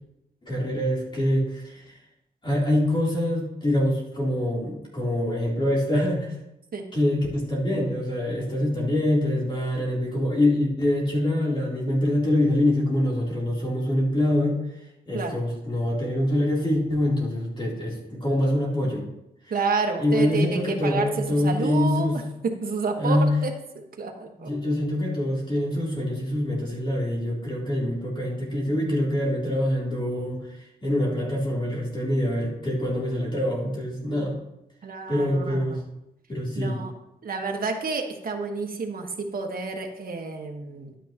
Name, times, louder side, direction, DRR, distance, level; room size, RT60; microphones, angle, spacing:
voice 1, 0.4-1.8 2.4-6.3 6.9-14.6 15.1-19.0 20.0-22.2 23.0-23.3 24.4-30.4 30.8-34.4 35.1-35.8 36.3-36.8, left 1 dB, 30° left, -4 dB, 3.3 m, -25 dB
voice 2, 19.5-22.1 22.4-23.5 24.0-24.5 34.8-35.8 36.5-36.9 37.2-41.0, right 4 dB, 60° right, 3 dB, 1.4 m, -29 dB
11.5 x 9.1 x 3.0 m, 0.88 s
wide cardioid pair, 95°, 17 cm